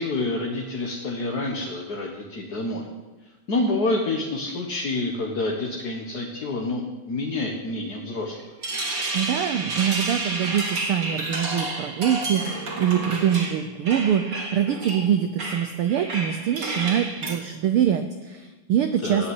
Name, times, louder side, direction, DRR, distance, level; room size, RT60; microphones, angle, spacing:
voice 1, 0.0-2.9 3.5-8.4 19.0-19.3, left 2 dB, 45° left, 0 dB, 1.4 m, -28 dB
sound 1, 8.4-17.4, right 2 dB, 30° right, 2.2 m, -30 dB
voice 2, 9.1-19.3, right 9 dB, 90° right, 9 dB, 1.2 m, -24 dB
14.5 x 9.0 x 9.6 m, 1.2 s
omnidirectional pair, 3.5 m